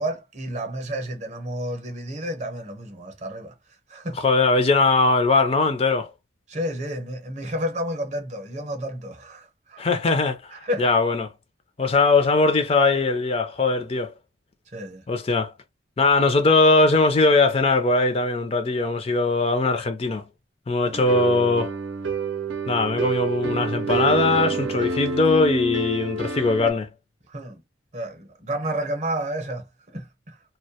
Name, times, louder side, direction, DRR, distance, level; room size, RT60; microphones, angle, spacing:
voice 1, 0.0-3.5 3.9-4.2 6.5-9.8 10.5-10.9 14.7-15.1 20.8-21.0 27.3-27.6 27.9-30.4, equal, 35° right, 0.7 m, -31 dB
voice 2, 4.2-6.1 9.8-11.3 11.8-14.1 15.1-15.5 16.0-20.2 20.7-21.7 22.7-26.9, left 3 dB, 30° left, 0.3 m, -20 dB
sound 1, 20.9-26.7, right 5 dB, 75° right, 0.5 m, -27 dB
2.3 x 2.1 x 2.7 m
head